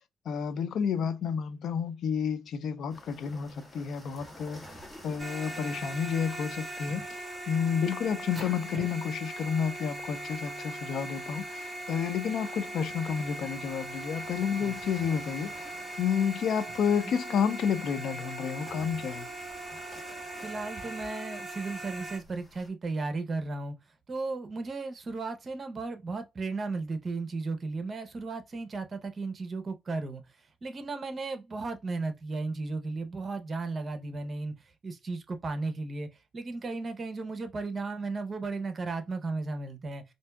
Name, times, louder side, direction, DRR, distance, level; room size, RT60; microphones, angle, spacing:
voice 1, 0.3-19.3, left 7 dB, 70° left, 0.4 m, -30 dB
sound 1, 2.9-22.7, equal, 15° left, 1.7 m, -53 dB
sound 2, 5.2-22.2, right 2 dB, 15° right, 1.8 m, -40 dB
voice 2, 20.4-23.8 24.1-30.2 30.6-34.5 34.8-36.1 36.3-40.0, right 3 dB, 40° right, 0.8 m, -35 dB
4.3 x 2.6 x 2.3 m
cardioid pair, 90°, 0 cm